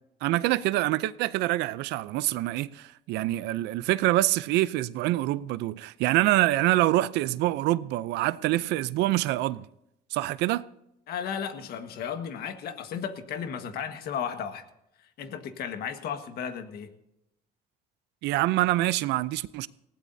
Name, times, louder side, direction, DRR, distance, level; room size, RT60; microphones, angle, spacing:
voice 1, 0.2-9.7 10.1-10.6 18.2-19.7, right 16 dB, 90° right, 0.6 m, -25 dB
voice 2, 11.1-14.6 15.2-16.9, left 7 dB, 70° left, 1.6 m, -34 dB
19.0 x 16.5 x 2.7 m
cardioid pair, 110°, 17 cm